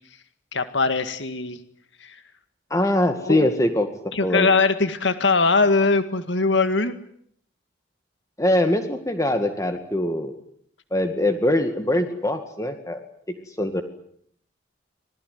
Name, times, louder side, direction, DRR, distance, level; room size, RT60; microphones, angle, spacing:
voice 1, 0.5-1.6 2.0-2.2 3.2-3.5 4.1-6.9, left 3 dB, 75° left, 10 dB, 2.0 m, -21 dB
voice 2, 2.7-4.5 8.4-10.4 10.9-13.8, left 1 dB, 15° left, 7 dB, 2.1 m, -23 dB
26.5 x 20.0 x 9.5 m, 0.66 s
head